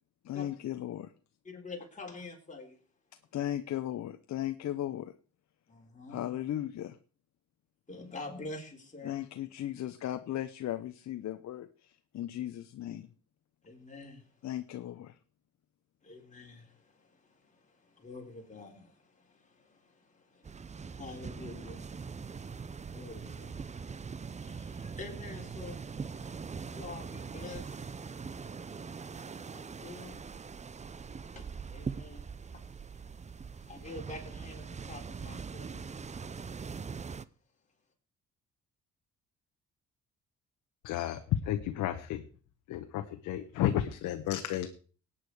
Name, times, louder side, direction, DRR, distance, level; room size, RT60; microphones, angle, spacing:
voice 1, 0.2-1.1 3.3-5.1 6.1-7.0 9.0-13.1 14.4-15.2, left 12 dB, 65° left, 9 dB, 0.8 m, -36 dB
voice 2, 1.4-2.8 5.7-6.2 7.9-9.2 13.6-14.5 16.0-25.8 26.6-27.9 29.5-30.2 31.3-33.1 33.5-35.8, left 3 dB, 25° left, 0 dB, 4.2 m, -47 dB
sound 1, 20.4-37.2, right 5 dB, 25° right, 0.6 m, -42 dB
voice 3, 40.8-42.2 42.7-44.7, left 12 dB, 90° left, 6 dB, 1.0 m, -32 dB
18.0 x 9.0 x 4.8 m, 0.40 s
cardioid pair, 90°, 30 cm